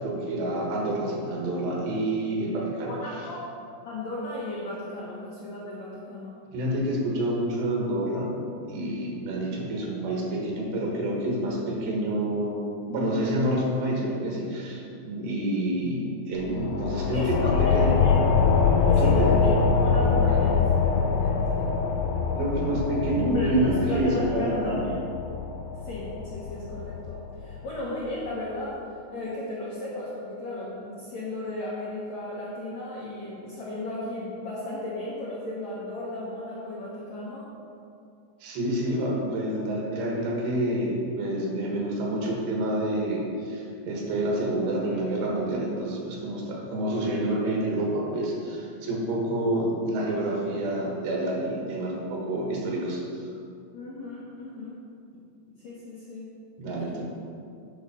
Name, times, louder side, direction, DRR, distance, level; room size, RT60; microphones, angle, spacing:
voice 1, 0.0-2.9 6.5-8.3 8.7-18.0 19.0-19.4 20.0-20.5 22.4-24.9 38.4-53.0 56.6-57.0, right 1 dB, 70° right, -2 dB, 3.5 m, -28 dB
voice 2, 2.8-3.4 3.8-6.4 15.5-15.6 17.1-18.2 18.9-19.5 19.8-20.6 20.8-21.7 23.3-24.9 25.8-28.8 29.1-37.5 53.7-54.8 55.6-56.3 56.6-57.0, left 1 dB, 70° left, -7 dB, 1.7 m, -35 dB
sound 1, 16.3-27.6, left 5 dB, 90° left, 3.3 m, -24 dB
9.6 x 6.2 x 5.3 m, 2.5 s
omnidirectional pair, 5.3 m